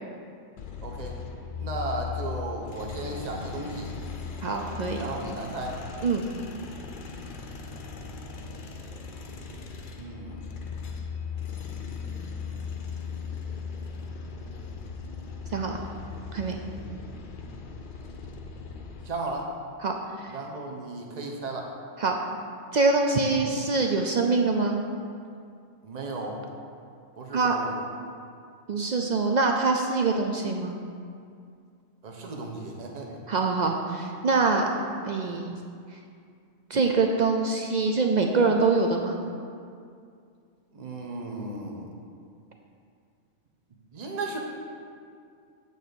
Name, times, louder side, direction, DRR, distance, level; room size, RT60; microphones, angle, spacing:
sound 1, 0.6-19.1, left 5 dB, 50° left, 0.7 m, -38 dB
voice 1, 0.8-1.2 1.6-3.9 4.9-5.8 10.0-10.5 19.0-19.5 20.3-21.7 23.3-23.5 25.8-26.4 27.2-27.7 32.0-33.2 40.7-41.9 43.9-44.4, right 2 dB, 35° right, 0 dB, 0.9 m, -35 dB
voice 2, 4.4-5.0 6.0-6.3 15.5-15.8 16.3-16.6 19.8-20.4 22.0-22.2 22.7-24.8 27.3-27.5 28.7-30.8 33.3-35.6 35.9-36.0 36.7-39.2, right 3 dB, 65° right, 2 dB, 0.4 m, -24 dB
8.3 x 4.1 x 6.9 m, 2.3 s
omnidirectional pair, 1.3 m